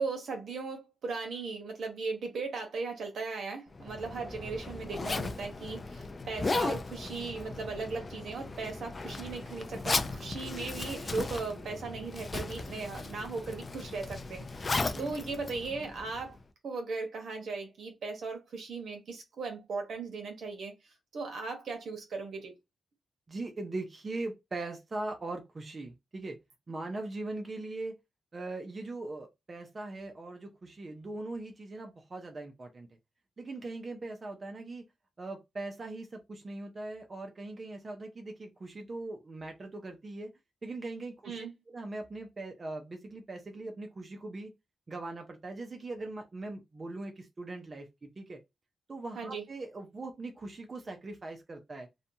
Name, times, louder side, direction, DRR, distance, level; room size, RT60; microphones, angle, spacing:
voice 1, 0.0-16.4 16.6-20.7 21.1-22.5 41.2-41.5 49.1-49.4, right 4 dB, 75° right, 0.9 m, -37 dB
Zipper (clothing), 3.7-16.4, left 3 dB, 30° left, 0.3 m, -36 dB
voice 2, 14.7-15.2 23.3-26.4 26.7-27.9 28.3-32.9 33.4-34.8 35.2-40.3 40.6-44.5 44.9-48.4 48.9-51.9, right 2 dB, 35° right, 0.5 m, -40 dB
2.7 x 2.2 x 2.6 m
wide cardioid pair, 125°, 0 cm